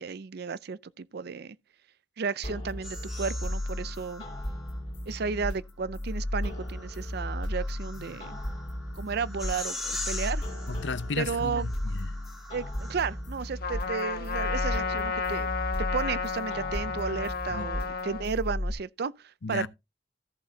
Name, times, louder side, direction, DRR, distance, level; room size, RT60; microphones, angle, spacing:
voice 1, 0.0-1.6 2.2-4.2 5.1-8.4 9.0-10.4 11.2-11.7 12.5-15.5 15.8-19.7, right 5 dB, 60° right, 0.5 m, -33 dB
sound 1, 2.4-18.7, left 1 dB, 30° left, 3.0 m, -35 dB
sound 2, 2.8-4.8 6.2-13.4, left 2 dB, ahead, 3.0 m, -42 dB
voice 2, 10.7-12.2 17.5-17.7 19.4-19.7, left 4 dB, 70° left, 0.7 m, -34 dB
Trumpet, 13.6-18.3, left 5 dB, 55° left, 1.4 m, -32 dB
14.0 x 7.4 x 2.8 m
head